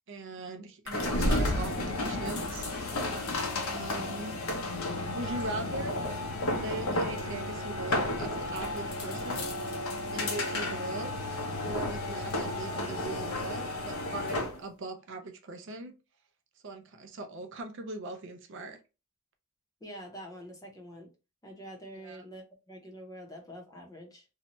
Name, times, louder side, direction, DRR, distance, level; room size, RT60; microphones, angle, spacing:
voice 1, 0.1-3.2 3.6-4.4 5.1-6.0 6.5-9.5 10.1-11.1 11.6-15.9 16.6-18.8 22.0-22.2, right 2 dB, 60° right, 0.5 m, -40 dB
sound 1, 0.9-14.6, left 1 dB, 90° left, 0.8 m, -32 dB
voice 2, 19.8-21.1 21.4-24.2, equal, 15° left, 0.7 m, -46 dB
2.7 x 2.2 x 2.9 m
head